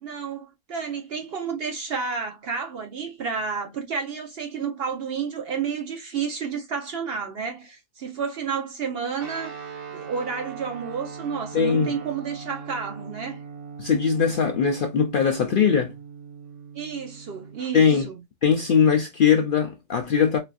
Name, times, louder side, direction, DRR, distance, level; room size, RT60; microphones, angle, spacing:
voice 1, 0.0-9.5 9.9-13.4 16.7-18.2, right 6 dB, 55° right, 0.8 m, -31 dB
Guitar, 9.2-17.7, right 6 dB, 85° right, 1.5 m, -40 dB
voice 2, 11.5-11.9 13.8-15.9 17.7-18.1 18.4-20.4, left 7 dB, 70° left, 0.5 m, -20 dB
4.1 x 2.5 x 2.3 m
omnidirectional pair, 1.4 m